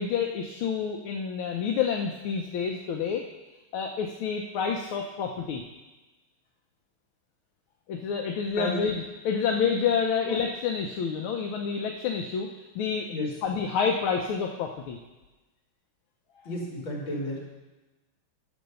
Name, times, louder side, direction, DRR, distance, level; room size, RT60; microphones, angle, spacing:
voice 1, 0.0-3.2 3.7-5.6 7.9-12.5 12.7-13.1 13.4-15.0, left 6 dB, 90° left, 2 dB, 1.6 m, -28 dB
voice 2, 16.4-17.4, left 1 dB, 70° left, -2 dB, 3.6 m, -32 dB
11.0 x 6.3 x 6.7 m, 1.1 s
omnidirectional pair, 2.2 m